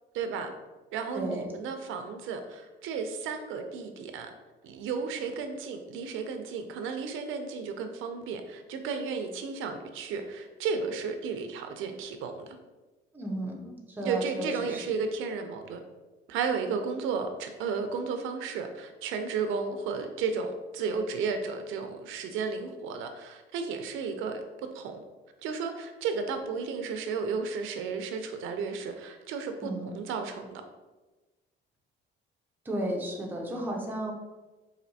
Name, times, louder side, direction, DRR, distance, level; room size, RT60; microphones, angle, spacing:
voice 1, 0.1-0.5 0.9-4.3 4.6-12.6 14.0-15.8 16.3-25.0 25.4-30.6, right 5 dB, 85° right, 6 dB, 0.5 m, -33 dB
voice 2, 1.1-1.5 13.1-14.8 29.6-30.0 32.6-34.1, right 1 dB, 10° right, -1 dB, 0.5 m, -34 dB
4.1 x 2.6 x 2.7 m, 1.2 s
cardioid pair, 155°, 20 cm